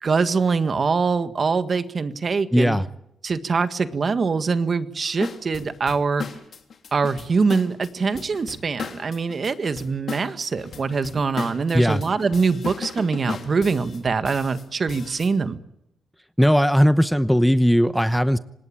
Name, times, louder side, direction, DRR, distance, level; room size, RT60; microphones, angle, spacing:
voice 1, 0.0-2.8 3.2-6.3 6.9-15.6, right 4 dB, 45° right, 11 dB, 1.7 m, -23 dB
voice 2, 2.5-2.8 11.7-12.0 16.4-18.4, equal, ahead, 12 dB, 0.9 m, -18 dB
sound 1, 5.2-15.3, left 6 dB, 60° left, 3.5 m, -36 dB
26.5 x 19.5 x 8.8 m, 0.82 s
cardioid pair, 90°, 0 cm